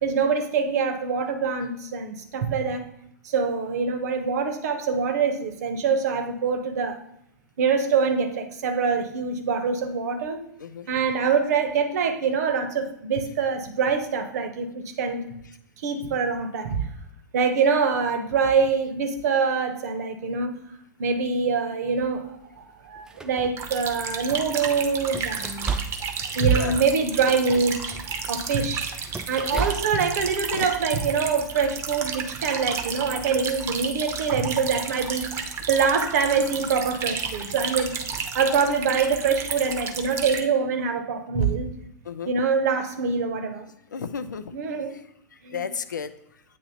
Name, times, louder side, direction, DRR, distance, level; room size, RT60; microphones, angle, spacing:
voice 1, 0.0-2.8 3.2-7.0 7.6-10.4 10.9-15.2 15.8-16.8 17.3-20.5 21.0-25.7 26.3-28.0 28.3-28.9 29.3-35.3 35.7-38.0 38.3-41.7 42.2-43.7 44.5-45.0 45.4-45.7, right 5 dB, 55° right, 6 dB, 1.0 m, -24 dB
sound 1, 22.0-22.2 22.9-24.2 24.7-30.2, right 5 dB, 5° right, 0.4 m, -35 dB
sound 2, 23.6-40.4, right 6 dB, 25° right, 0.8 m, -32 dB
voice 2, 43.9-44.4 44.9-45.0 45.5-46.1, left 6 dB, 75° left, 10 dB, 0.4 m, -32 dB
8.6 x 2.9 x 4.2 m, 0.76 s
figure-of-eight pair, 95°, 10 cm